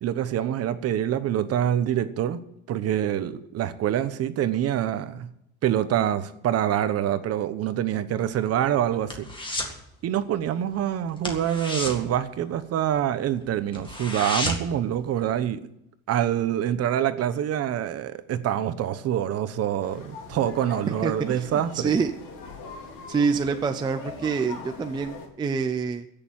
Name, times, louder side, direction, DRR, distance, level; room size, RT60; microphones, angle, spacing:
voice 1, 0.0-2.4 2.7-5.3 5.6-9.3 10.0-15.7 16.1-21.9, right 10 dB, 40° right, 1.0 m, -26 dB
sound 1, 8.2-9.8 10.1-10.4 10.7-10.8 11.2-13.0 13.4-13.5 13.7-14.8 15.2-15.3, left 1 dB, 15° left, 1.9 m, -32 dB
sound 2, 19.8-25.3, left 4 dB, 55° left, 3.7 m, -41 dB
voice 2, 20.9-22.1 23.1-26.1, right 5 dB, 10° right, 0.5 m, -26 dB
16.0 x 6.9 x 9.2 m
cardioid pair, 160°, 37 cm